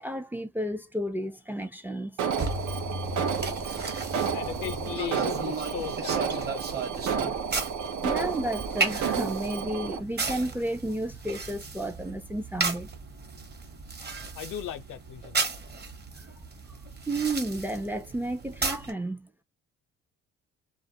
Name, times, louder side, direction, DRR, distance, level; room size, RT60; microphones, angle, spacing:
voice 1, 0.0-2.2 8.0-12.9 16.2-16.3 17.1-19.3, right 1 dB, 5° right, 0.4 m, -32 dB
Alarm, 2.2-10.0, right 7 dB, 75° right, 0.7 m, -31 dB
sound 1, 2.4-18.9, right 3 dB, 35° right, 1.0 m, -35 dB
voice 2, 4.1-6.8 14.1-15.4, left 11 dB, 80° left, 0.6 m, -38 dB
2.4 x 2.0 x 2.7 m
cardioid pair, 90°, 30 cm